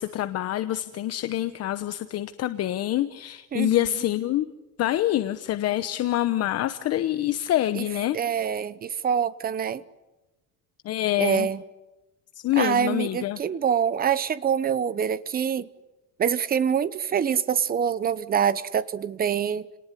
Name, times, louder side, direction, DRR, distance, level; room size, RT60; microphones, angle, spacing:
voice 1, 0.0-4.5 4.8-8.2 10.8-11.5 12.3-13.4, left 13 dB, 45° left, 11 dB, 0.9 m, -26 dB
voice 2, 3.5-4.0 7.7-7.8 8.1-9.8 11.2-11.6 12.6-15.7 16.2-19.7, right 8 dB, 25° right, 16 dB, 0.9 m, -25 dB
30.0 x 19.0 x 9.8 m, 1.1 s
cardioid pair, 160°, 35 cm